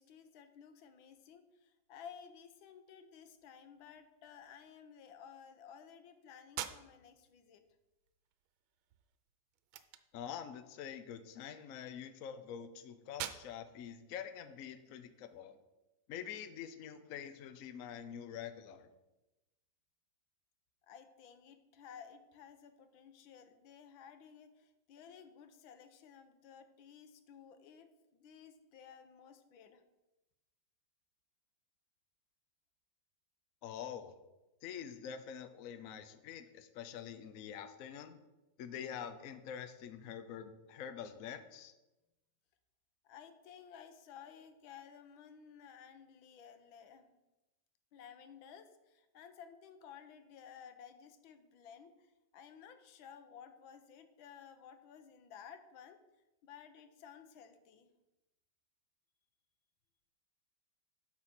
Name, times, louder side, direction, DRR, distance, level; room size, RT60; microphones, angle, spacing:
voice 1, 0.0-7.6 20.9-29.8 43.0-47.2 47.9-56.0 56.4-57.9, left 7 dB, 85° left, 9 dB, 1.6 m, -55 dB
sound 1, 6.4-15.4, right 11 dB, 85° right, 1.4 m, -50 dB
voice 2, 10.1-15.6 16.1-18.9 33.6-34.2 34.6-38.2 38.6-41.7, left 8 dB, 65° left, 9 dB, 0.8 m, -46 dB
12.0 x 4.3 x 5.8 m, 1.0 s
omnidirectional pair, 2.1 m